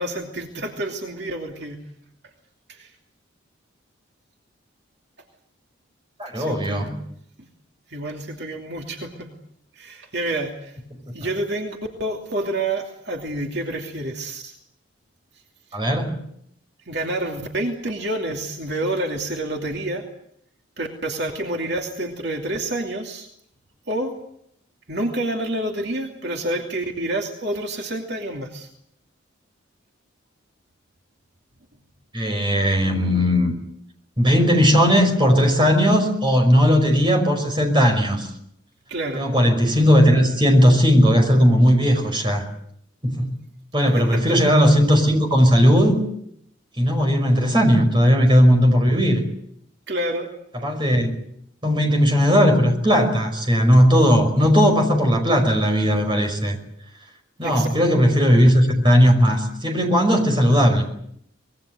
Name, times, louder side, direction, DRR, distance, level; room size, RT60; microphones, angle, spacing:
voice 1, 0.0-1.8 2.7-2.9 6.3-7.0 7.9-9.3 9.7-10.8 11.1-14.6 15.7-15.8 16.9-20.0 20.8-23.3 23.9-24.1 24.9-28.7 38.9-39.2 43.9-44.5 49.9-50.3 50.6-50.7 57.4-57.8, right 1 dB, 55° right, 2 dB, 2.7 m, -28 dB
voice 2, 6.2-6.9 15.7-16.2 32.1-33.5 34.2-38.3 39.2-42.4 43.0-43.3 43.7-46.0 46.8-49.2 50.6-51.1 51.6-56.6 57.4-60.8, equal, 25° right, 4 dB, 5.4 m, -17 dB
25.0 x 21.5 x 7.8 m, 0.72 s
head